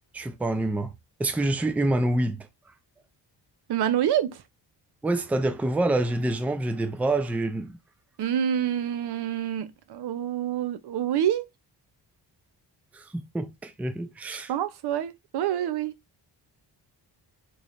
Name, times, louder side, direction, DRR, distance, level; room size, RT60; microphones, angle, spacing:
voice 1, 0.1-0.9 1.2-2.5 5.0-7.8 12.9-14.5, right 2 dB, 5° right, 0.3 m, -27 dB
voice 2, 3.7-4.4 8.2-11.5 14.5-15.9, right 10 dB, 65° right, 0.6 m, -27 dB
3.1 x 2.4 x 4.1 m
cardioid pair, 100°, 43 cm